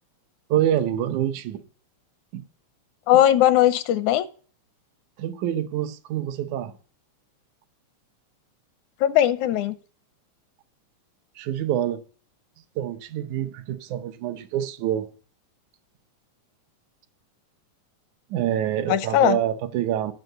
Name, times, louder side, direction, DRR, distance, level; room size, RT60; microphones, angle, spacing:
voice 1, 0.5-1.6 2.3-2.4 5.2-6.7 11.4-12.0 12.8-15.1 18.3-20.1, right 11 dB, 75° right, 2.2 m, -26 dB
voice 2, 3.1-4.3 9.0-9.7 18.9-19.4, left 12 dB, 80° left, 2.1 m, -19 dB
11.0 x 6.3 x 7.8 m
omnidirectional pair, 3.5 m